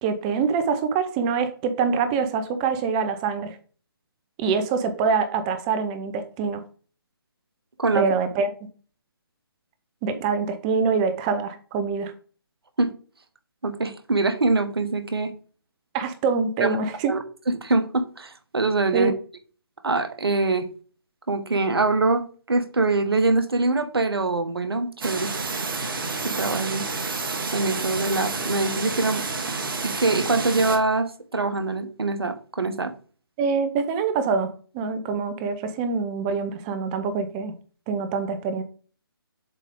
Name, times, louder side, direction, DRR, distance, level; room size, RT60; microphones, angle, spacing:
voice 1, 0.0-3.6 4.4-6.6 7.9-8.5 10.0-12.1 15.9-17.2 18.9-19.1 33.4-37.5 37.9-38.6, right 5 dB, 20° right, 10 dB, 0.7 m, -25 dB
voice 2, 13.6-15.3 16.6-16.8 17.0-19.1 19.8-20.7 21.3-25.3 26.2-26.9 27.5-29.2 29.8-32.9, right 3 dB, 80° right, 9 dB, 1.1 m, -24 dB
sound 1, 25.0-30.8, right 4 dB, 65° right, 1.4 m, -29 dB
7.4 x 3.6 x 3.7 m, 0.40 s
figure-of-eight pair, 150°, 13 cm